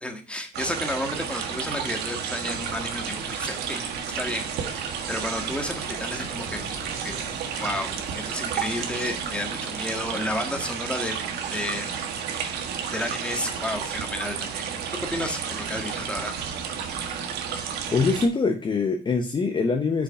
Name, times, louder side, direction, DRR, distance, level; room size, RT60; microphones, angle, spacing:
voice 1, 0.0-3.8 4.1-6.6 7.0-7.2 7.6-11.2 11.5-12.0 12.3-12.6 12.9-14.7 15.0-16.3, left 1 dB, 5° left, 4 dB, 1.6 m, -32 dB
sound 1, 0.5-18.3, right 7 dB, 75° right, 1.5 m, -32 dB
sound 2, 2.4-9.4, right 1 dB, 35° right, 2.9 m, -45 dB
voice 2, 17.9-20.0, left 4 dB, 25° left, 4 dB, 0.9 m, -23 dB
7.0 x 5.1 x 5.6 m, 0.35 s
cardioid pair, 110°, 17 cm